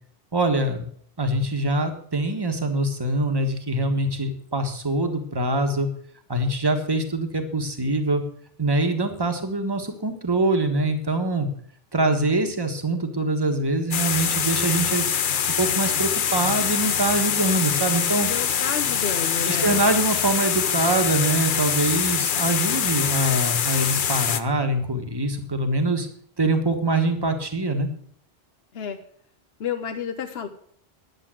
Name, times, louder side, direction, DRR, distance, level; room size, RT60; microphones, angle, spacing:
voice 1, 0.3-0.8 1.2-5.9 6.3-8.2 8.6-11.5 11.9-15.0 15.6-18.3 19.4-26.1 26.4-27.9, right 2 dB, 25° right, 5 dB, 1.4 m, -24 dB
sound 1, 13.9-24.4, left 8 dB, 55° left, 0.8 m, -24 dB
voice 2, 18.2-19.8 28.7-29.0 29.6-30.5, left 7 dB, 75° left, 6 dB, 1.1 m, -30 dB
11.0 x 7.6 x 7.6 m, 0.62 s
omnidirectional pair, 1.1 m